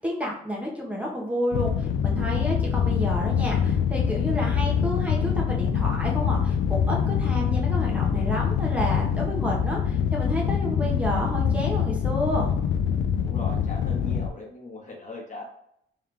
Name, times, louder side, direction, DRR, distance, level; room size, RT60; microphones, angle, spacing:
voice 1, 0.0-12.5, equal, 5° right, -3 dB, 1.1 m, -30 dB
sound 1, 1.5-14.3, left 7 dB, 70° left, 0.5 m, -24 dB
voice 2, 13.2-15.4, left 2 dB, 40° left, -1 dB, 1.2 m, -39 dB
3.6 x 3.2 x 3.3 m, 0.72 s
cardioid pair, 90°, 20 cm